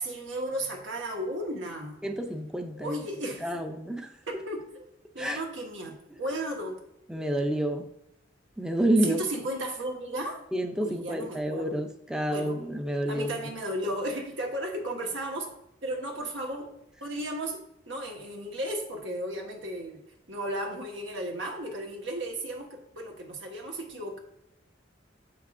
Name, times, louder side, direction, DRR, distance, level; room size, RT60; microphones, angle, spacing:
voice 1, 0.0-2.0 2.8-3.5 4.3-4.9 5.1-6.8 9.0-10.4 10.8-11.8 12.3-12.6 13.1-15.5 15.8-16.7 17.0-20.0 20.3-24.2, right 1 dB, 90° right, 1 dB, 1.4 m, -34 dB
voice 2, 2.0-3.0 3.4-4.1 5.2-5.4 7.1-7.9 8.6-9.2 10.5-13.3, right 1 dB, 5° right, 5 dB, 0.4 m, -29 dB
7.3 x 5.8 x 2.5 m, 0.81 s
head